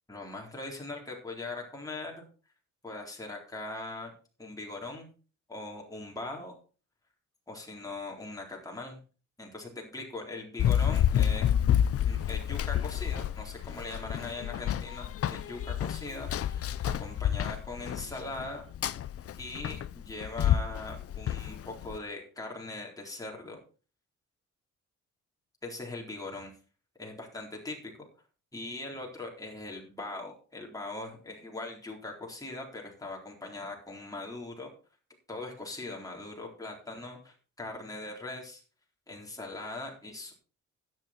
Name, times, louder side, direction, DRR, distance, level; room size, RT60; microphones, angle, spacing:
voice 1, 0.1-2.2 2.8-4.1 4.4-5.1 5.5-6.6 7.5-9.0 9.4-11.5 12.0-18.6 19.4-23.6 25.6-26.5 27.0-27.9 28.5-34.7 35.3-38.6 39.1-40.3, left 2 dB, 10° left, -1 dB, 4.0 m, -41 dB
Run, 10.6-22.0, left 10 dB, 50° left, 0.6 m, -29 dB
12.0 x 9.3 x 4.4 m, 0.37 s
cardioid pair, 90°, 30 cm